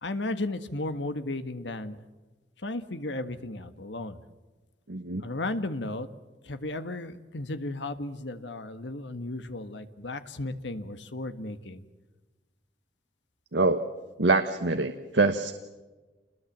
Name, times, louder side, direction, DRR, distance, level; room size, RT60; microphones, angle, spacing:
voice 1, 0.0-2.0 2.6-4.2 5.2-6.1 6.4-11.8, left 2 dB, 90° left, 10 dB, 1.7 m, -34 dB
voice 2, 4.9-5.2 13.5-13.8 14.2-15.5, right 3 dB, 85° right, 7 dB, 1.3 m, -24 dB
28.5 x 21.0 x 7.6 m, 1.2 s
head